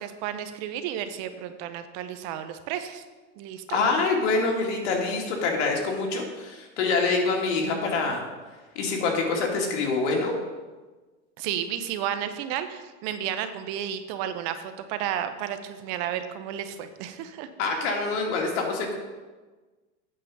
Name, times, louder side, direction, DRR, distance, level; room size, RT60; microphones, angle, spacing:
voice 1, 0.0-3.0 3.4-3.8 11.4-17.5, right 10 dB, 50° right, 10 dB, 0.8 m, -32 dB
voice 2, 3.7-8.2 8.8-10.3 17.6-19.0, left 3 dB, 75° left, 1 dB, 2.3 m, -25 dB
8.7 x 5.1 x 6.9 m, 1.3 s
supercardioid pair, 145°, 36 cm